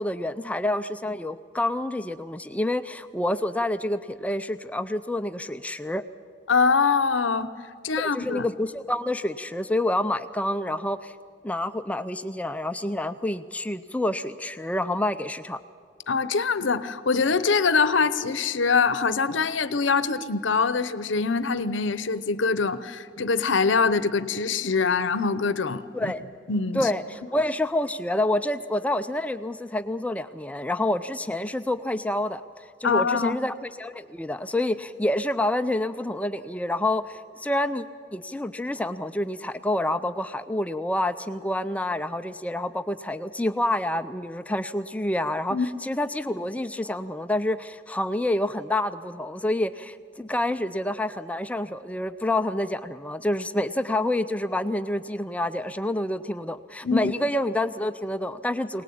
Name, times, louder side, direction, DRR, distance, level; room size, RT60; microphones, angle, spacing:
voice 1, 0.0-6.0 8.0-11.1 11.4-15.6 25.9-26.2 26.7-37.8 38.1-58.8, left 1 dB, 5° left, 10 dB, 0.5 m, -28 dB
voice 2, 6.5-7.5 7.8-8.5 16.1-26.1 26.5-26.9 32.8-33.4 45.5-45.7 56.8-57.1, left 4 dB, 70° left, 14 dB, 0.9 m, -24 dB
23.0 x 19.0 x 8.6 m, 2.2 s
head